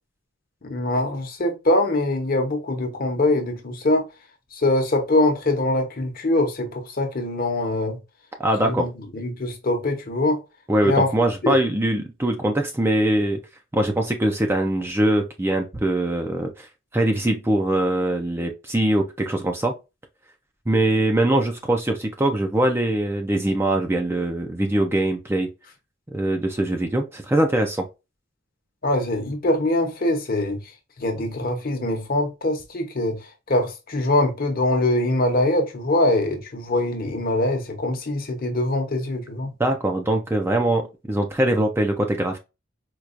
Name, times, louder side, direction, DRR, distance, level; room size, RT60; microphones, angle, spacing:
voice 1, 0.6-4.1 4.5-8.0 8.6-8.9 9.1-10.4 10.8-11.1 11.4-11.6 28.8-30.6 31.0-33.2 33.5-39.5, left 1 dB, 45° left, 0.9 m, -23 dB
voice 2, 8.4-8.9 10.7-13.4 13.7-16.7 16.9-19.7 20.7-25.5 26.1-27.8 39.6-42.4, right 1 dB, 10° right, 0.4 m, -22 dB
4.5 x 2.3 x 2.5 m
head